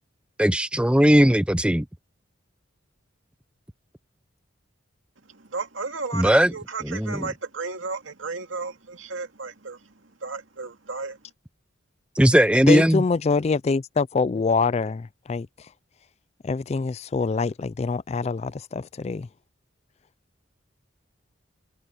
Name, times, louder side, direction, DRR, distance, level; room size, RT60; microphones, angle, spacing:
voice 1, 0.4-1.8 6.1-6.5 6.8-7.2 12.2-13.0, equal, 5° right, 0.7 m, -18 dB
voice 2, 5.2-11.3, right 4 dB, 80° right, 2.2 m, -34 dB
voice 3, 12.7-15.5 16.4-19.3, left 4 dB, 35° left, 0.3 m, -25 dB
head